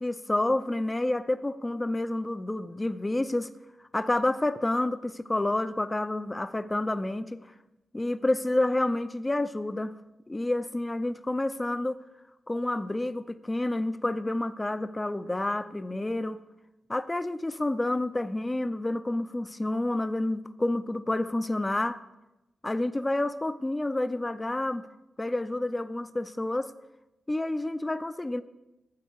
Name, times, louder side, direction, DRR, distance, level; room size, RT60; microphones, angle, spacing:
voice 1, 0.0-3.5 3.9-7.4 7.9-9.9 10.3-12.0 12.5-16.4 16.9-22.0 22.6-24.9 25.2-26.7 27.3-28.4, left 1 dB, 15° left, 12 dB, 0.5 m, -29 dB
12.0 x 7.5 x 4.7 m, 0.98 s
wide cardioid pair, 120°, 0 cm